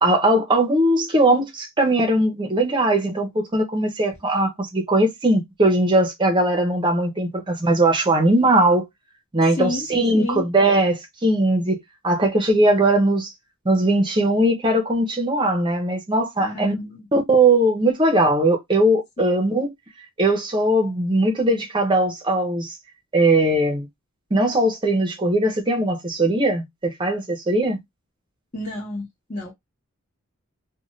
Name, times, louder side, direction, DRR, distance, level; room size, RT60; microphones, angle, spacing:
voice 1, 0.0-8.9 9.3-13.3 13.6-16.7 17.1-19.7 20.2-22.7 23.1-23.9 24.3-27.8, right 1 dB, 20° right, 0.6 m, -20 dB
voice 2, 9.6-9.9 10.1-10.4 16.4-17.0 28.5-29.5, left 2 dB, 35° left, 1.0 m, -30 dB
2.6 x 2.2 x 3.0 m
head